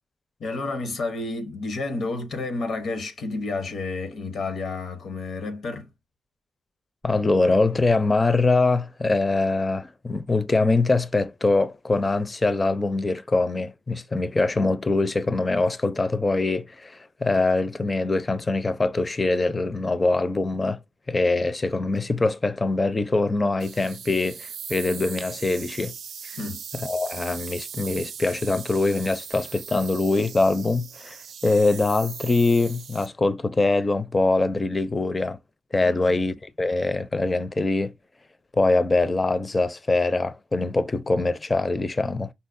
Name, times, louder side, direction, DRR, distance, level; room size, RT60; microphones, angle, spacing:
voice 1, 0.4-5.9 26.3-26.6 35.8-36.2, left 3 dB, 70° left, 0.8 m, -30 dB
voice 2, 7.0-20.8 21.1-25.9 26.2-26.3 26.7-31.2 31.4-35.4 35.7-37.9 38.5-42.3, left 3 dB, 25° left, 0.4 m, -23 dB
sound 1, 23.6-33.1, right 7 dB, 75° right, 0.4 m, -39 dB
5.4 x 2.0 x 2.5 m
cardioid pair, 95°, 0 cm